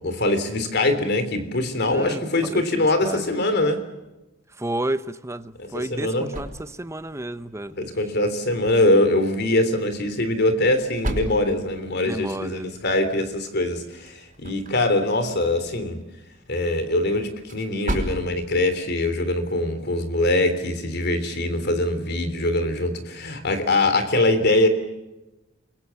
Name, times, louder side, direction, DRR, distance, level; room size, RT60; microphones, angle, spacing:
voice 1, 0.0-3.8 5.6-6.3 7.7-16.0 16.5-24.7, left 2 dB, 55° left, 3.5 m, -23 dB
voice 2, 1.9-3.2 4.6-7.7 12.0-12.8, right 1 dB, 15° right, 0.9 m, -31 dB
sound 1, 5.4-19.9, right 1 dB, 40° right, 4.9 m, -38 dB
29.5 x 22.5 x 7.2 m
head